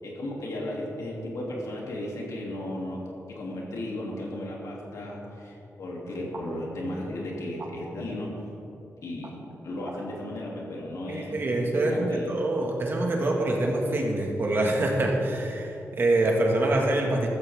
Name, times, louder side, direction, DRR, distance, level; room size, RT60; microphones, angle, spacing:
voice 1, 0.0-3.0 3.3-8.3 9.0-9.4 9.6-11.4 11.8-12.4, left 1 dB, 75° left, -3 dB, 3.0 m, -35 dB
voice 2, 11.1-17.3, right 2 dB, 45° right, 0 dB, 1.9 m, -25 dB
14.0 x 14.0 x 3.7 m, 2.9 s
wide cardioid pair, 150°, 5 cm